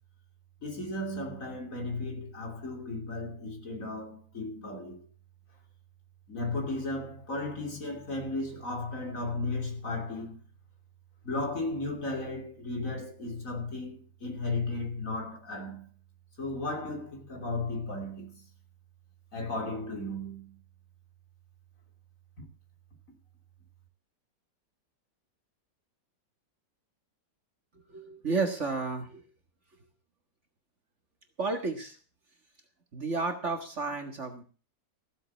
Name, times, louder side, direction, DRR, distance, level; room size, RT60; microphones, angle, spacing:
voice 1, 0.6-5.1 6.3-10.4 11.2-15.9 16.4-18.5 19.3-20.6 22.4-22.5, left 2 dB, 45° left, 3.5 m, -35 dB
voice 2, 27.9-29.2 31.4-32.0 32.9-34.4, right 3 dB, 40° right, 1.9 m, -32 dB
15.5 x 7.8 x 7.2 m
omnidirectional pair, 1.9 m